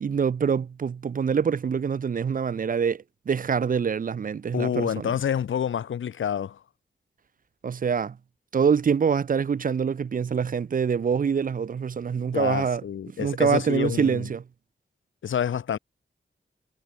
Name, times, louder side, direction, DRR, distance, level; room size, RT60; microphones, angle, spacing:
voice 1, 0.0-5.1 7.6-8.2 8.5-12.8 13.2-14.4, right 6 dB, 45° right, 0.4 m, -25 dB
voice 2, 4.5-6.6 12.2-14.3 15.2-15.8, left 8 dB, 80° left, 0.6 m, -28 dB
wide cardioid pair, 95°, 20 cm